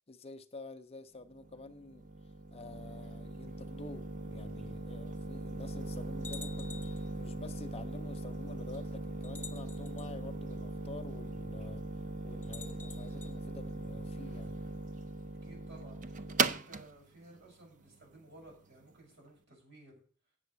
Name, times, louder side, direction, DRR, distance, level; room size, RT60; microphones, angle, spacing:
voice 1, 0.1-2.1 2.5-11.8 12.2-14.6, left 2 dB, 30° left, 0.6 m, -48 dB
sound 1, 1.3-18.9, right 3 dB, 40° right, 0.5 m, -39 dB
sound 2, 6.2-7.1 8.2-8.3 9.2-10.1 12.4-13.3, left 5 dB, 10° left, 1.0 m, -48 dB
voice 2, 15.4-20.0, right 2 dB, 60° right, 6.9 m, -56 dB
8.9 x 7.1 x 8.0 m
head